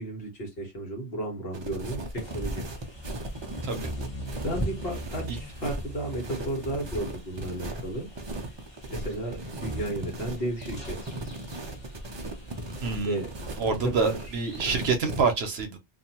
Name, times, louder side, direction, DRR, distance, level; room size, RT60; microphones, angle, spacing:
voice 1, 0.0-2.6 4.4-8.1 8.9-11.2 13.0-13.3 13.8-14.2 14.6-14.8, right 1 dB, 55° left, 1.3 m, -33 dB
sound 1, 1.5-15.2, right 1 dB, 45° right, 0.3 m, -37 dB
sound 2, 2.1-14.8, right 1 dB, 25° left, 1.0 m, -41 dB
voice 2, 12.8-13.2 13.6-15.8, right 4 dB, 65° right, 0.8 m, -27 dB
2.7 x 2.4 x 2.8 m
omnidirectional pair, 1.2 m